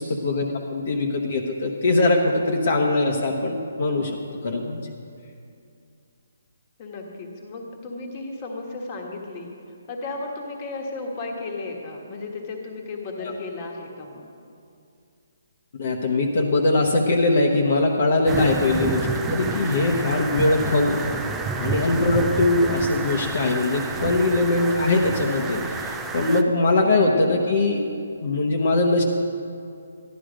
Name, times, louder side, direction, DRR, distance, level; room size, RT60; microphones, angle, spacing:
voice 1, 0.0-4.2 4.4-4.8 13.2-13.4 15.8-21.0 21.5-27.8 28.2-29.0, left 2 dB, 45° left, 1 dB, 1.0 m, -21 dB
voice 2, 6.8-9.5 9.9-14.3 26.7-27.2, left 3 dB, 20° left, 1 dB, 1.3 m, -34 dB
sound 1, 18.3-26.4, right 4 dB, 5° right, 0.4 m, -30 dB
13.5 x 11.5 x 5.1 m, 2.4 s
hypercardioid pair, 175°, 0 cm